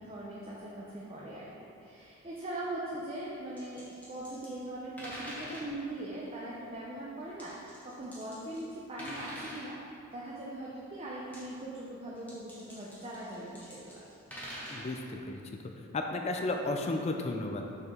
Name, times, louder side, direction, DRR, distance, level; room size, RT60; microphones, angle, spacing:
voice 1, 0.0-1.5 1.8-14.0, right 1 dB, 25° right, -5 dB, 0.6 m, -41 dB
sound 1, 3.6-4.5 5.0-5.7 7.4-8.7 9.0-9.7 11.1-11.6 12.2-14.9, equal, 5° left, 1.0 m, -44 dB
voice 2, 14.7-15.4 15.9-17.6, left 2 dB, 30° left, 3 dB, 0.4 m, -33 dB
6.5 x 4.8 x 3.5 m, 2.7 s
head